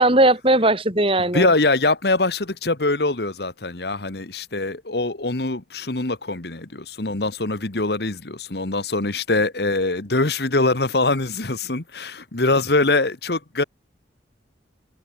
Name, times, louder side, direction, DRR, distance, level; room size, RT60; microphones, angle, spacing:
voice 1, 0.0-1.5, right 2 dB, 30° right, 4.3 m, -18 dB
voice 2, 1.3-13.6, left 2 dB, 60° left, 1.5 m, -23 dB
head